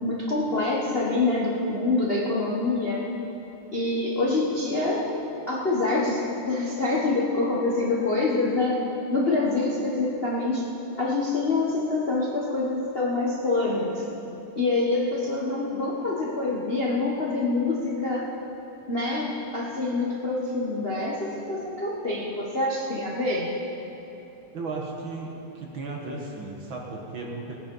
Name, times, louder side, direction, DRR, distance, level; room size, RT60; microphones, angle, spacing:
voice 1, 0.0-3.0 3.7-5.1 5.5-10.7 11.0-14.0 14.5-18.3 18.9-23.5, left 2 dB, 80° left, -5 dB, 0.5 m, -26 dB
voice 2, 24.5-27.6, right 3 dB, 50° right, -1 dB, 1.7 m, -35 dB
18.5 x 9.4 x 5.5 m, 2.9 s
omnidirectional pair, 3.5 m